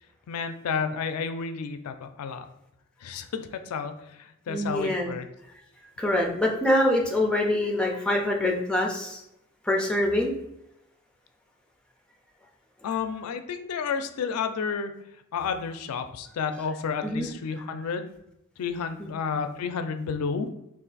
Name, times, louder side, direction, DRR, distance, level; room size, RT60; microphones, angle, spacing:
voice 1, 0.3-2.5 3.0-5.3 12.8-14.9 15.3-18.1 18.6-20.5, left 6 dB, 85° left, 8 dB, 0.4 m, -31 dB
voice 2, 4.5-5.1 6.0-9.2 9.6-10.3 17.0-17.3 19.0-19.1, left 1 dB, 5° left, 0 dB, 0.5 m, -25 dB
3.2 x 2.5 x 3.8 m, 0.83 s
head